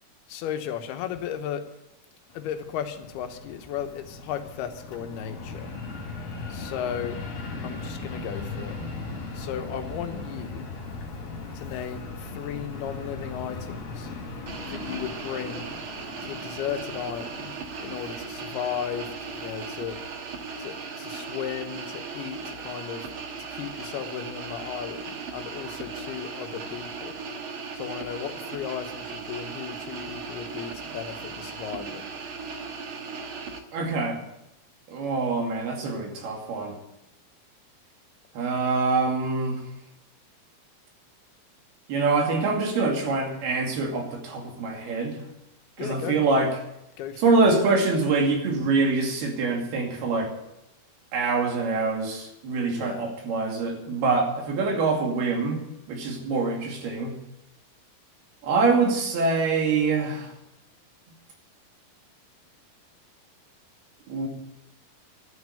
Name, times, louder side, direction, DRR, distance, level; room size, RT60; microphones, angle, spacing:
voice 1, 0.3-1.6 2.3-5.7 6.5-7.2 7.6-8.8 9.3-10.7 11.5-14.1 14.6-15.7 16.2-17.5 17.8-20.0 20.6-23.1 23.5-27.2 27.7-32.0 45.8-46.2 47.0-47.5 52.7-53.1, left 9 dB, 90° left, 7 dB, 3.1 m, -35 dB
Fixed-wing aircraft airplane, 2.3-20.1, left 3 dB, 65° left, 4.0 m, -39 dB
sound 1, 14.5-33.6, right 5 dB, 60° right, 1.4 m, -37 dB
voice 2, 33.7-34.2 34.9-36.8 38.3-39.6 41.9-45.2 45.8-46.5 47.2-50.3 51.1-55.6 55.9-57.1 58.4-60.3 64.1-64.3, right 3 dB, 80° right, 1 dB, 4.5 m, -25 dB
12.5 x 9.7 x 8.9 m, 0.87 s
omnidirectional pair, 4.4 m